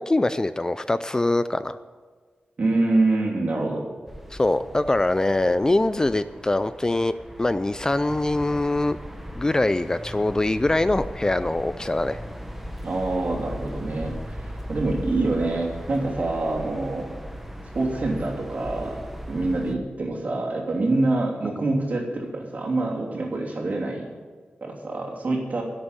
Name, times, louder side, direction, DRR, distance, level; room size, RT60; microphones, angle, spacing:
voice 1, 0.0-1.8 4.3-9.0 9.4-12.2, left 2 dB, 20° left, 13 dB, 0.3 m, -23 dB
voice 2, 2.6-3.9 12.8-14.2 14.7-17.1 17.7-19.0 19.3-24.1 24.6-25.6, right 2 dB, 50° right, -2 dB, 3.1 m, -25 dB
sound 1, 4.1-19.8, equal, 5° right, 1.1 m, -38 dB
11.5 x 8.1 x 9.1 m, 1.5 s
wide cardioid pair, 130°, 3 cm